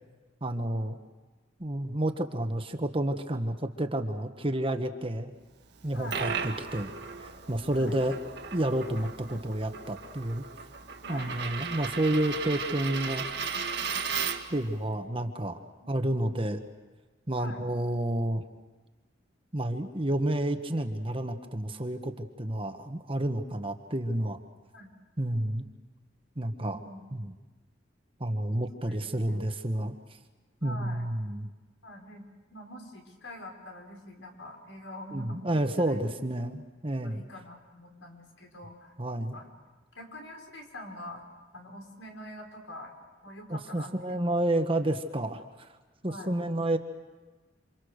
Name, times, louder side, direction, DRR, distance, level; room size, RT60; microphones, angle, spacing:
voice 1, 0.4-1.0 1.6-5.3 5.8-6.9 7.2-8.1 8.5-10.4 11.1-13.2 14.5-15.6 15.9-16.6 17.3-18.4 19.5-24.4 25.2-25.7 26.4-26.8 27.1-27.3 28.2-29.9 30.6-31.5 35.1-37.2 39.0-39.4 43.5-45.7 46.0-46.8, right 1 dB, 30° right, 7 dB, 1.4 m, -30 dB
Coin (dropping), 5.7-14.6, right 6 dB, 60° right, 1.7 m, -36 dB
voice 2, 5.9-6.2 7.7-8.0 11.0-11.3 15.8-15.9 17.3-17.6 24.7-25.0 26.6-27.2 28.9-29.5 30.6-31.1 31.8-35.9 37.0-38.9 39.3-39.5 40.0-41.2 41.5-42.9 43.2-43.9 46.0-46.3, left 1 dB, 85° left, 2 dB, 5.4 m, -45 dB
28.0 x 27.0 x 6.6 m, 1.3 s
head